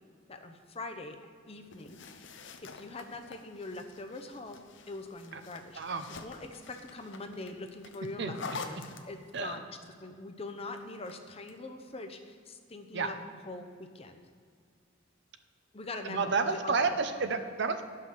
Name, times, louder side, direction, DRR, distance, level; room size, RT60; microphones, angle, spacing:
voice 1, 0.3-1.2 1.5-2.0 2.6-5.8 6.1-9.6 10.0-13.1 13.5-14.2 15.7-16.7 17.2-17.3, left 2 dB, 30° left, 6 dB, 0.7 m, -43 dB
sound 1, 1.7-9.6 10.8-11.6, left 4 dB, 65° left, 0.7 m, -47 dB
voice 2, 5.7-6.0 8.2-8.3 8.7-8.8 9.3-9.6 12.9-13.1 16.0-17.8, right 4 dB, 60° right, 8 dB, 0.7 m, -30 dB
10.5 x 5.7 x 6.5 m, 2.1 s
head